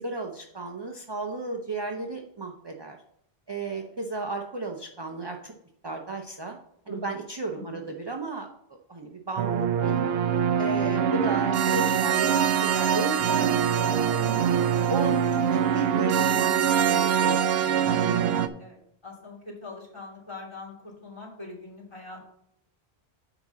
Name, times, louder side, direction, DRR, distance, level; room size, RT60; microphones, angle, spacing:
voice 1, 0.0-3.0 3.5-5.5 5.8-6.6 6.9-8.5 8.9-10.0 10.6-14.4 14.9-18.0, right 3 dB, 30° right, 2 dB, 0.6 m, -34 dB
voice 2, 6.9-7.2 7.5-7.9 10.8-11.0 17.9-18.2 18.6-18.8 19.0-22.2, left 3 dB, 25° left, -4 dB, 3.1 m, -43 dB
sound 1, 9.4-18.5, right 8 dB, 75° right, 0.8 m, -24 dB
9.5 x 3.9 x 6.1 m, 0.72 s
omnidirectional pair, 1.1 m